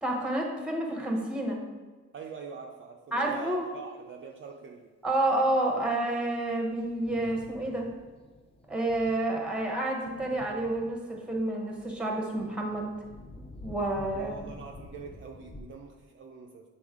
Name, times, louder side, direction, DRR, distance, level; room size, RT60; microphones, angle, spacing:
voice 1, 0.0-1.6 3.1-3.7 5.0-7.9 8.7-12.9 13.6-14.3, right 1 dB, 5° right, 0 dB, 0.9 m, -29 dB
voice 2, 2.1-4.9 14.1-16.6, right 5 dB, 45° right, 1 dB, 0.5 m, -44 dB
Thunder, 5.9-15.6, left 2 dB, 20° left, 0.6 m, -49 dB
7.8 x 4.1 x 3.6 m, 1.3 s
wide cardioid pair, 165°, 29 cm